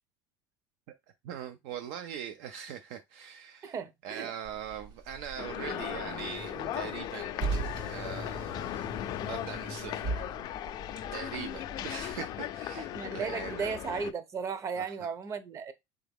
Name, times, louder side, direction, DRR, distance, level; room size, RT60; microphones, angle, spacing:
voice 1, 1.2-3.8 4.0-8.9 9.2-10.3 11.1-13.8 14.8-14.9, right 9 dB, 75° right, 0.5 m, -42 dB
voice 2, 3.6-4.3 12.7-15.7, right 6 dB, 30° right, 0.7 m, -36 dB
Car, 4.4-12.1, right 3 dB, 55° right, 2.1 m, -40 dB
sound 1, 5.4-14.1, left 12 dB, 45° left, 0.4 m, -37 dB
3.9 x 3.5 x 3.5 m
cardioid pair, 130°, 10 cm